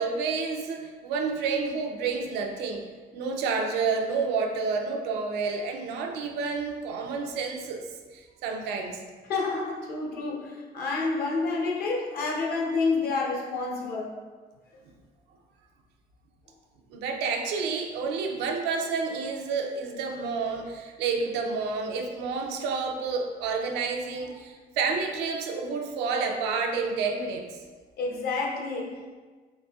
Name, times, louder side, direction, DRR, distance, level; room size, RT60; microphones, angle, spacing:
voice 1, 0.0-2.9 3.1-7.9 8.1-9.0 16.9-27.5, right 4 dB, 90° right, 3 dB, 0.5 m, -29 dB
voice 2, 9.3-14.1 28.0-29.1, left 3 dB, 65° left, -2 dB, 0.8 m, -29 dB
4.0 x 3.3 x 2.3 m, 1.4 s
cardioid pair, 110°, 17 cm